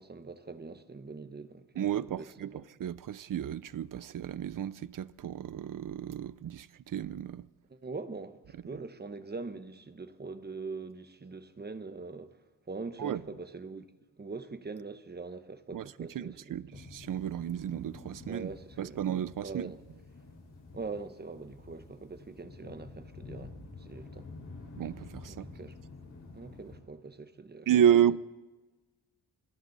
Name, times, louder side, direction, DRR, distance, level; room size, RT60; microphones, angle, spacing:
voice 1, 0.0-1.9 2.2-2.5 7.7-12.4 12.7-13.9 14.2-16.8 18.3-19.0 19.4-19.8 20.7-24.3 25.3-25.8 26.3-28.2, right 4 dB, 25° right, 1.1 m, -43 dB
voice 2, 1.8-7.5 13.0-13.2 15.7-15.8 16.1-18.5 18.8-19.7 24.8-25.5 27.7-28.2, right 10 dB, 50° right, 0.6 m, -31 dB
sound 1, 16.7-26.8, left 3 dB, 45° left, 5.0 m, -49 dB
26.0 x 25.0 x 4.1 m
wide cardioid pair, 170°, 43 cm